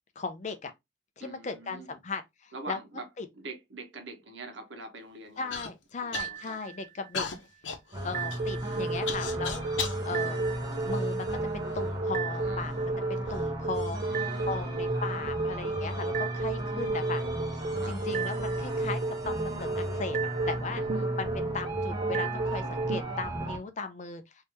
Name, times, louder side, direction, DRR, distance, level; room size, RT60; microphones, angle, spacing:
voice 1, 0.2-0.7 1.2-2.8 3.2-3.3 5.4-7.3 8.0-9.6 10.0-10.4 10.8-12.7 13.1-14.0 14.4-17.2 17.5-20.8 21.2-24.4, left 4 dB, 40° left, 0.5 m, -37 dB
voice 2, 1.2-1.9 2.5-3.1 3.3-5.5 6.0-6.6 12.4-12.6 14.0-14.7 17.8-18.0 20.6-21.1, right 3 dB, 80° right, 1.0 m, -44 dB
Human voice / Cough, 5.5-5.7 6.1-6.6 7.1-10.0 10.7-11.6 12.3-12.4 13.1-13.5, left 6 dB, 85° left, 0.8 m, -37 dB
sound 1, 6.1-7.1 8.1-23.0, right 3 dB, 45° right, 0.3 m, -33 dB
sound 2, 7.9-23.6, right 1 dB, 20° right, 1.0 m, -35 dB
3.1 x 2.8 x 3.3 m
head